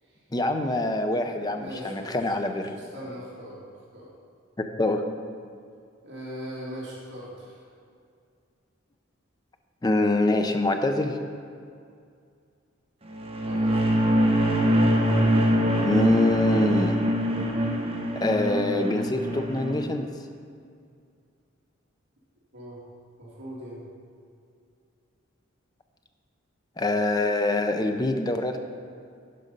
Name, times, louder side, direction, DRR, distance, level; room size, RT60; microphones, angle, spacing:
voice 1, 0.3-2.7 4.6-5.0 9.8-11.2 15.8-17.0 18.2-20.1 26.8-28.6, left 2 dB, 20° left, 6 dB, 0.5 m, -25 dB
voice 2, 1.6-2.2 2.5-4.1 6.0-7.6 13.3-13.9 22.5-22.8 23.2-23.8, equal, 60° right, -6 dB, 2.2 m, -40 dB
sound 1, 13.1-19.8, equal, 30° right, 0.8 m, -24 dB
11.0 x 5.2 x 5.3 m, 2.3 s
head